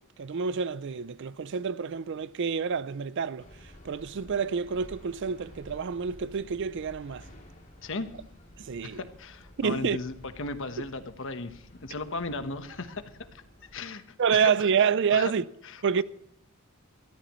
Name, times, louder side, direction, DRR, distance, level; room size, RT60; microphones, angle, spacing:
voice 1, 0.2-3.4 3.8-7.2 8.6-9.0 9.6-10.0 14.2-15.4 15.8-16.0, right 6 dB, 55° right, 0.5 m, -28 dB
sound 1, 3.4-13.9, equal, 40° left, 3.1 m, -52 dB
voice 2, 8.8-13.0 13.3-13.4 13.7-14.5 14.8-14.9 15.1-15.3 15.6-16.0, left 3 dB, 65° left, 1.2 m, -36 dB
21.0 x 14.0 x 3.1 m
head